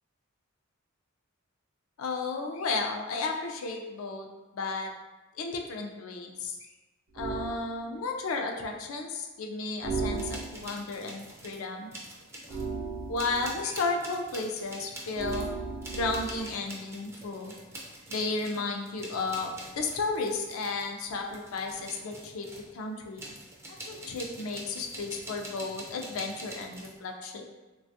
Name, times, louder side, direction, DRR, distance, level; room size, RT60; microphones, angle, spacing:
voice 1, 2.0-4.3 4.5-4.9 5.4-6.7 7.1-11.9 13.1-15.5 15.9-17.5 18.1-22.5 22.7-23.2 23.9-27.4, left 3 dB, 75° left, 2 dB, 0.4 m, -33 dB
sound 1, 7.2-7.6 9.8-10.8 12.5-13.6 15.1-16.5, right 4 dB, 70° right, 0.6 m, -35 dB
sound 2, 10.1-11.6 11.9-12.7 13.2-22.7 23.2-27.0, right 1 dB, 10° right, 0.3 m, -45 dB
3.3 x 2.3 x 2.6 m, 1.1 s
head